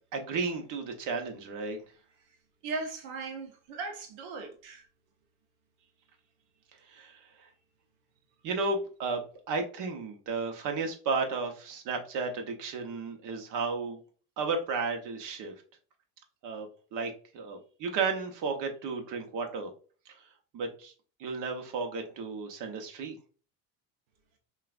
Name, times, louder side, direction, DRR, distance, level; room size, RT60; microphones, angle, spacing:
voice 1, 0.1-1.8 6.9-7.2 8.4-9.2 9.5-14.0 14.4-15.5 16.4-19.7 20.1-20.2 20.5-20.9 21.2-23.1, right 4 dB, 55° right, 1.0 m, -33 dB
voice 2, 2.6-4.9, right 3 dB, 80° right, 0.8 m, -38 dB
5.5 x 2.5 x 2.5 m
cardioid pair, 125°, 37 cm